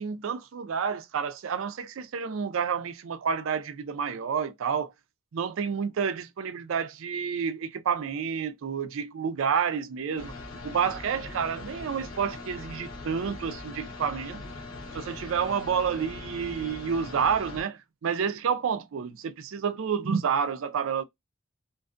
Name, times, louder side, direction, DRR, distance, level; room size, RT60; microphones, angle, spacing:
voice 1, 0.0-4.9 5.3-10.3 10.6-14.4 14.9-21.0, right 6 dB, 70° right, 0.4 m, -29 dB
sound 1, 10.2-17.6, left 2 dB, 70° left, 0.8 m, -41 dB
2.5 x 2.4 x 2.4 m
head